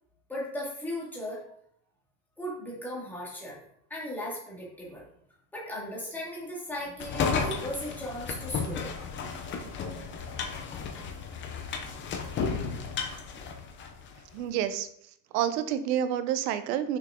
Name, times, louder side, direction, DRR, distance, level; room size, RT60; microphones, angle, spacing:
voice 1, 0.3-1.4 2.4-3.6 3.9-5.0 5.5-9.1, left 1 dB, 5° left, -5 dB, 2.0 m, -37 dB
sound 1, 7.0-14.2, left 5 dB, 25° left, 0.7 m, -33 dB
voice 2, 14.3-14.9 15.3-17.0, right 10 dB, 70° right, 11 dB, 0.9 m, -28 dB
6.2 x 5.5 x 3.7 m, 0.69 s
supercardioid pair, 155°, 50 cm